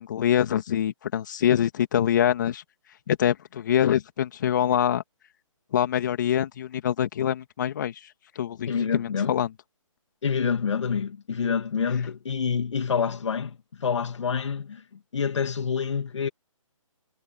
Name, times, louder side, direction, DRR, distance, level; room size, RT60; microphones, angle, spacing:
voice 1, 0.0-2.6 3.1-5.0 5.7-7.9 8.4-9.5, left 10 dB, 35° left, 2.4 m, -24 dB
voice 2, 8.7-9.4 10.2-16.3, left 6 dB, 60° left, 2.0 m, -27 dB
hypercardioid pair, 170°, 17 cm